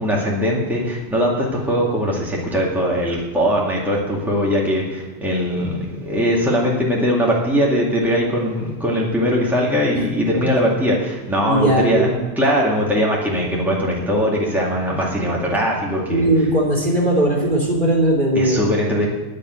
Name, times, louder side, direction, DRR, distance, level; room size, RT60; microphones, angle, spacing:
voice 1, 0.0-12.1 12.4-16.3 18.3-19.1, equal, ahead, -4 dB, 2.0 m, -20 dB
voice 2, 11.4-12.2 16.1-18.6, right 1 dB, 50° right, -3 dB, 3.1 m, -18 dB
10.5 x 6.6 x 9.0 m, 1.3 s
omnidirectional pair, 1.1 m